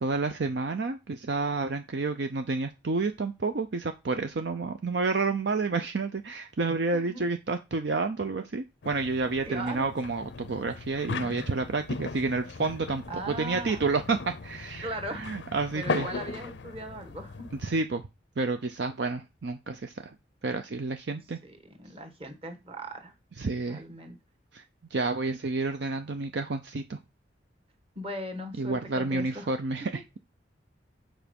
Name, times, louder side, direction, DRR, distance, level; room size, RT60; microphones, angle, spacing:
voice 1, 0.0-16.1 17.6-18.0 18.4-20.1 20.4-21.4 23.4-23.8 24.5-24.6 24.9-27.0 28.6-29.9, right 3 dB, 60° right, 7 dB, 0.6 m, -30 dB
sound 1, 8.8-17.8, left 4 dB, 70° left, 0.5 m, -38 dB
voice 2, 9.4-9.9 13.1-13.8 14.8-15.3 15.7-17.5 21.1-23.1 23.7-24.2 27.9-29.5, right 1 dB, 30° right, 5 dB, 1.4 m, -39 dB
7.2 x 4.4 x 5.2 m, 0.25 s
head